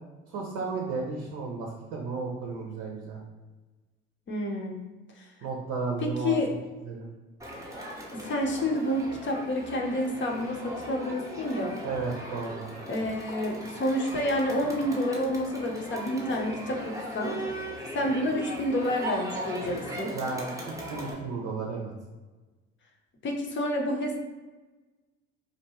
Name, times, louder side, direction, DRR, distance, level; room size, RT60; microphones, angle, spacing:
voice 1, 0.3-3.2 5.4-6.6 6.8-7.1 11.8-12.7 20.1-21.9, right 4 dB, 65° right, -1 dB, 0.7 m, -33 dB
voice 2, 4.3-4.8 5.2-5.3 6.0-6.5 8.1-11.8 12.9-17.4 17.9-20.2 23.2-24.2, left 1 dB, 35° left, 1 dB, 0.6 m, -29 dB
Crowd, 7.4-21.1, equal, 10° right, 0.7 m, -38 dB
2.7 x 2.2 x 2.8 m, 1.2 s
hypercardioid pair, 60°, 33 cm